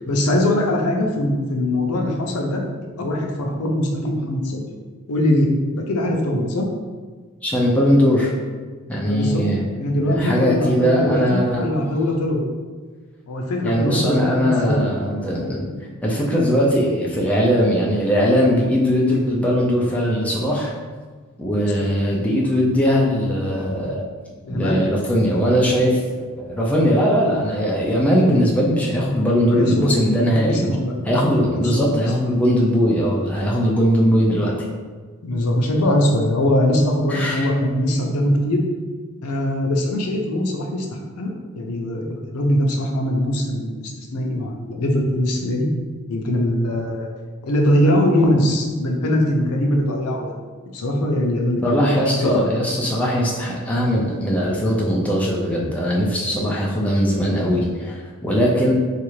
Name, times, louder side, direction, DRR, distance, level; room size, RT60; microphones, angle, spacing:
voice 1, 0.1-2.6 3.0-4.6 5.1-6.7 9.1-9.4 9.8-12.4 13.3-14.9 21.5-21.7 24.4-24.8 28.2-28.4 29.5-30.9 31.5-32.0 35.2-38.6 39.2-40.9 41.2-45.7 46.1-47.1 47.4-50.3 50.7-51.8 52.2-52.3, left 1 dB, 75° left, 1 dB, 0.5 m, -21 dB
voice 2, 7.4-8.3 8.9-9.6 10.0-11.7 13.6-15.7 16.0-20.7 21.4-24.0 24.5-26.0 26.4-30.8 31.0-34.5 37.1-37.5 51.6-58.7, equal, 5° left, -4 dB, 0.4 m, -20 dB
3.1 x 2.4 x 3.1 m, 1.5 s
head